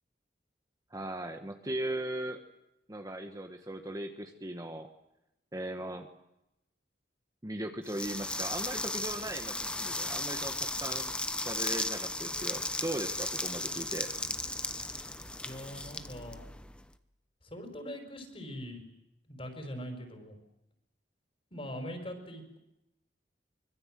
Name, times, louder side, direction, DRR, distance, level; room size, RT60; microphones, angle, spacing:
voice 1, 0.9-2.4 2.9-4.9 5.5-6.1 7.4-11.1 11.4-14.1, right 1 dB, 20° right, 5 dB, 1.4 m, -38 dB
sound 1, 7.9-16.8, left 2 dB, 5° left, 0.9 m, -36 dB
voice 2, 15.4-16.4 17.4-18.8 19.3-20.3 21.5-22.6, equal, 35° left, 5 dB, 5.1 m, -42 dB
24.5 x 22.0 x 7.7 m, 0.87 s
head